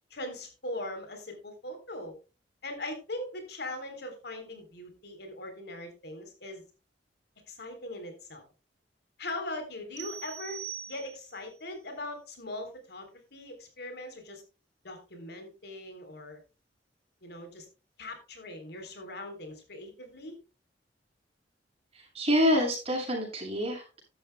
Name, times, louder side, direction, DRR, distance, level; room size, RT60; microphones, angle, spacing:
voice 1, 0.1-2.2 2.6-6.6 7.5-8.4 9.2-14.4 14.8-16.4 17.2-17.7 18.0-20.4, left 1 dB, 65° left, 6 dB, 3.7 m, -40 dB
sound 1, 10.0-11.5, right 10 dB, 85° right, 4.2 m, -42 dB
voice 2, 21.9-24.0, equal, 35° right, 0 dB, 6.8 m, -27 dB
15.0 x 11.0 x 2.2 m, 0.30 s
head